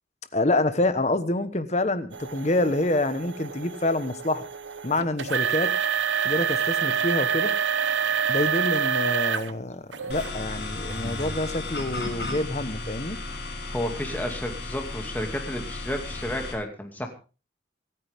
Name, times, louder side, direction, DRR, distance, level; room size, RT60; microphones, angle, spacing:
voice 1, 0.3-4.4 4.8-5.7 6.2-7.5 8.3-13.2, left 2 dB, 35° left, 12 dB, 1.2 m, -27 dB
sound 1, 2.1-9.5 9.9-10.3 10.9-11.0 11.7-11.8, right 7 dB, 85° right, 1.1 m, -27 dB
sound 2, 10.1-16.5, left 2 dB, 60° left, 6.7 m, -34 dB
voice 2, 13.4-17.1, equal, 10° left, 4 dB, 2.4 m, -32 dB
26.5 x 9.4 x 3.6 m, 0.34 s
head